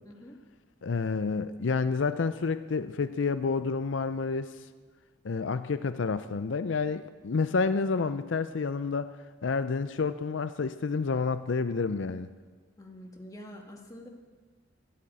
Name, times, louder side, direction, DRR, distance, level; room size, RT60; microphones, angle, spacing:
voice 1, 0.1-0.4 12.8-14.1, left 1 dB, 20° left, 1 dB, 1.8 m, -46 dB
voice 2, 0.8-4.7 5.2-9.1 9.4-12.3, left 4 dB, 75° left, 12 dB, 0.5 m, -29 dB
12.5 x 12.0 x 8.7 m, 1.5 s
head